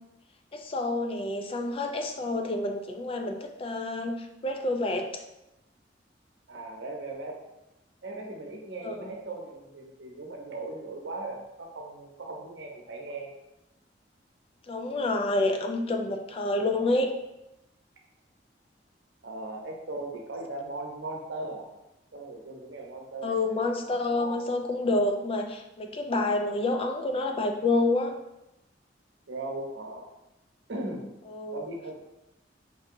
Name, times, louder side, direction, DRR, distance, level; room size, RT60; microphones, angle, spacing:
voice 1, 0.5-5.2 8.8-9.1 14.7-17.1 23.2-28.2 31.3-31.6, left 2 dB, 30° left, 4 dB, 0.4 m, -28 dB
voice 2, 6.5-7.4 8.0-13.3 19.2-21.7 22.1-24.4 24.9-25.0 29.3-30.1 30.7-31.1 31.5-31.9, right 2 dB, 90° right, 0 dB, 0.8 m, -38 dB
5.2 x 2.8 x 2.6 m, 0.92 s
head